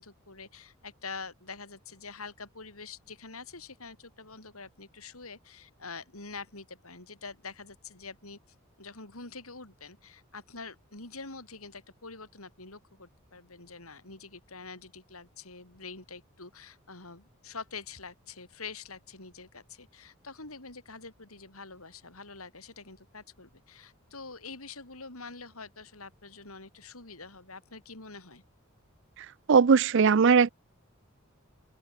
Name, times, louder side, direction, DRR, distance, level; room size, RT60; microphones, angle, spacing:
voice 1, 0.0-8.4 8.8-28.4, left 4 dB, 90° left, 6.8 m, -45 dB
voice 2, 29.5-30.5, right 5 dB, 60° right, 0.5 m, -19 dB
open air
head